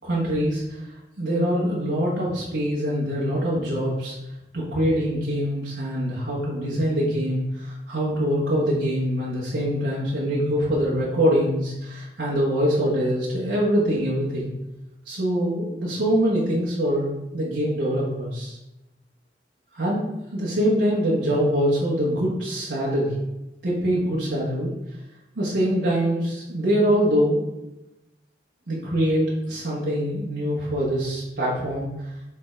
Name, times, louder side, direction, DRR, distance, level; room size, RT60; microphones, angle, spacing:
voice 1, 0.0-0.8 1.2-4.1 4.5-14.5 15.1-18.6 19.7-20.0 20.3-23.1 23.6-24.7 25.3-27.4 28.7-31.9, equal, 85° right, -6 dB, 1.5 m, -24 dB
7.3 x 3.7 x 4.6 m, 0.95 s
head